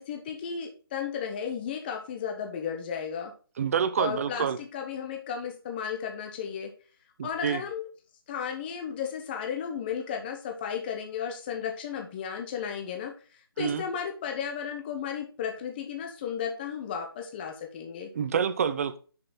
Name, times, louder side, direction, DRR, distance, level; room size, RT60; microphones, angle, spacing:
voice 1, 0.0-3.3 4.0-6.7 7.2-7.9 8.3-18.1, left 7 dB, 25° left, 0.9 m, -34 dB
voice 2, 3.6-4.6 7.2-7.6 13.6-13.8 18.1-19.0, right 7 dB, 35° right, 0.7 m, -27 dB
6.9 x 6.8 x 3.9 m
figure-of-eight pair, 155°, 13 cm